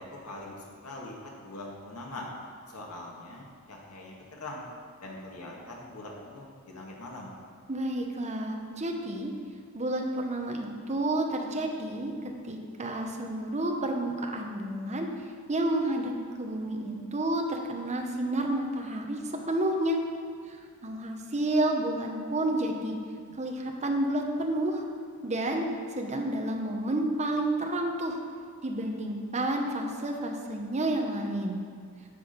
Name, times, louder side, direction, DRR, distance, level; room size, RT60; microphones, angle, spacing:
voice 1, 0.0-2.3 2.7-4.7 5.0-7.3, left 2 dB, 90° left, -2 dB, 1.9 m, -42 dB
voice 2, 7.7-9.3 9.7-15.1 15.5-16.1 16.4-20.0 20.5-23.0 23.3-24.8 25.2-28.2 28.6-31.6, right 1 dB, 30° right, 2 dB, 1.0 m, -30 dB
9.8 x 6.3 x 5.2 m, 2.2 s
head